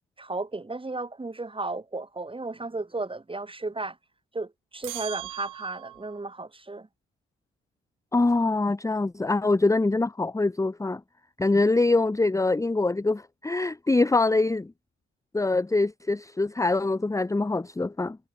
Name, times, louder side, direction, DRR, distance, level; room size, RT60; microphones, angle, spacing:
voice 1, 0.2-4.0 4.3-6.9, right 3 dB, 15° right, 3.1 m, -34 dB
sound 1, 4.8-6.2, right 15 dB, 85° right, 3.9 m, -39 dB
voice 2, 8.1-11.0 11.4-14.7 15.3-18.2, left 2 dB, 10° left, 0.9 m, -24 dB
cardioid pair, 90°, 30 cm